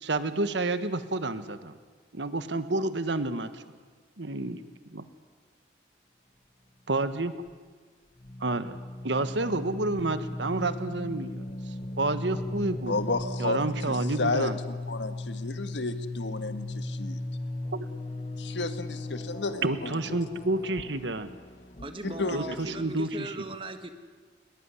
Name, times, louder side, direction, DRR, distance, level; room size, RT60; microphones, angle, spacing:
voice 1, 0.0-1.7 2.1-3.6 4.2-5.0 6.9-7.3 8.4-8.8 9.0-11.5 12.0-13.0 13.4-14.6 17.7-17.8 19.6-21.3 22.3-23.4, right 2 dB, 85° right, 11 dB, 1.4 m, -29 dB
sound 1, 7.2-7.5 8.2-23.1, left 2 dB, 35° left, 1.0 m, -37 dB
voice 2, 12.9-13.6 13.9-17.2 18.4-20.0 22.0-22.4, left 2 dB, 80° left, 10 dB, 1.6 m, -32 dB
voice 3, 21.8-23.9, right 2 dB, 30° right, 8 dB, 1.6 m, -38 dB
21.5 x 20.5 x 9.8 m, 1.5 s
head